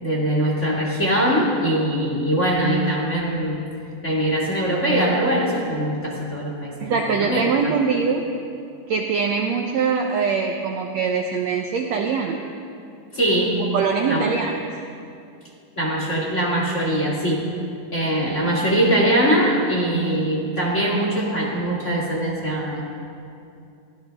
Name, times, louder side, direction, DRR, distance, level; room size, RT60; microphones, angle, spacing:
voice 1, 0.0-3.7 4.0-7.7 13.1-13.7 14.1-14.3 15.8-17.5 17.9-22.8, right 1 dB, 25° left, -3 dB, 1.9 m, -22 dB
voice 2, 6.8-8.3 8.9-12.4 13.7-14.7, right 5 dB, 75° right, 2 dB, 1.6 m, -23 dB
22.5 x 16.0 x 3.5 m, 2.5 s
omnidirectional pair, 3.9 m